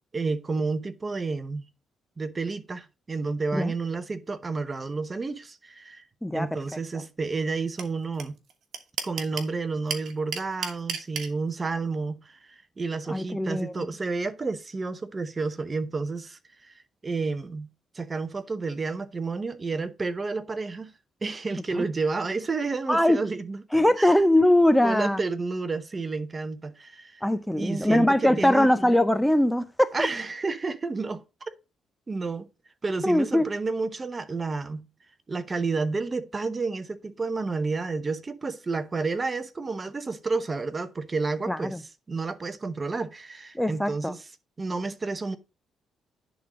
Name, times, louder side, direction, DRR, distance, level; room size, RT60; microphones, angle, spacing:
voice 1, 0.1-1.7 2.2-6.0 6.3-8.4 9.0-17.7 17.9-20.9 21.2-23.6 24.0-24.2 24.8-27.2 27.6-28.7 29.9-31.5 32.1-32.5 32.8-34.9 35.3-41.8 42.1-44.2 44.6-45.4, right 4 dB, 30° right, 0.9 m, -30 dB
voice 2, 6.2-6.6 6.9-7.0 13.1-13.9 21.8-21.9 22.9-23.2 23.7-25.2 27.2-30.1 33.0-33.5 41.5-41.8 43.5-44.1, left 1 dB, 5° left, 0.6 m, -22 dB
sound 1, 7.8-7.9 8.2-8.3 8.5-9.5 9.9-11.3, right 6 dB, 65° right, 1.6 m, -31 dB
10.5 x 3.8 x 5.0 m
cardioid pair, 80°, 0 cm